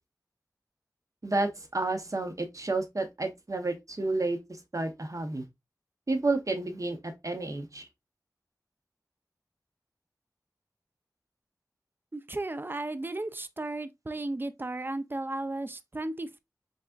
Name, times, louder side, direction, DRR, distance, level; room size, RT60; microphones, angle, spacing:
voice 1, 1.2-4.4 4.7-5.4 6.1-7.9, right 2 dB, 50° right, 0.8 m, -30 dB
voice 2, 12.1-16.4, right 2 dB, 30° right, 0.4 m, -35 dB
4.0 x 3.3 x 2.3 m
wide cardioid pair, 50°, 7 cm